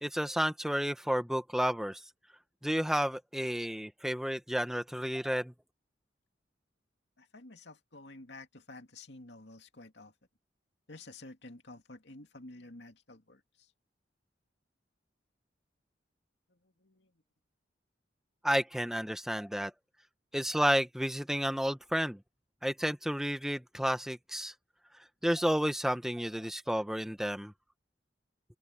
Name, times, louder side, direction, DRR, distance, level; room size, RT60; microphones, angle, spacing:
voice 1, 0.0-2.0 2.6-5.5 18.4-19.7 20.3-22.2 22.6-24.5 25.2-27.5, equal, ahead, 1.0 m, -31 dB
voice 2, 7.2-10.1 10.9-13.4 16.8-17.1, left 2 dB, 70° left, 2.5 m, -50 dB
open air
head